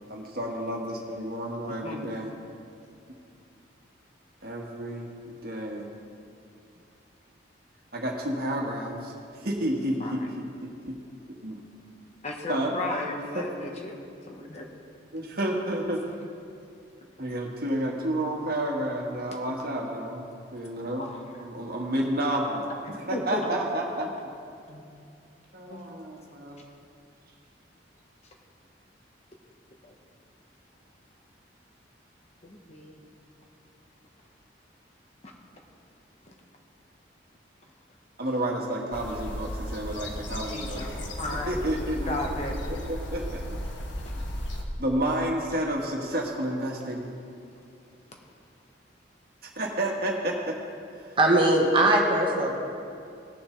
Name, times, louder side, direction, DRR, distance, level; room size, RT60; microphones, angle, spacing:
voice 1, 0.1-2.3 4.4-5.9 7.9-9.1 9.4-11.0 11.3-11.6 12.5-12.8 13.3-13.5 15.1-16.0 17.2-21.1 21.4-24.1 25.5-26.6 38.2-40.8 41.5-43.6 44.2-44.3 44.8-47.1 49.4-50.6 51.0-51.2, right 1 dB, 50° right, 0 dB, 1.5 m, -30 dB
voice 2, 1.7-2.1 10.0-10.3 12.2-14.7 21.0-21.2 22.9-23.4 24.7-24.8 25.7-25.8 29.8-29.9 32.4-33.1 35.2-35.3 36.2-36.3 40.5-41.5 42.1-42.6 44.0-44.2, left 1 dB, 35° left, 1 dB, 1.1 m, -35 dB
sound 1, 38.9-44.6, left 1 dB, 75° left, 1.2 m, -35 dB
voice 3, 51.2-52.5, right 1 dB, 25° right, 0 dB, 1.3 m, -20 dB
19.0 x 7.1 x 3.2 m, 2.5 s
head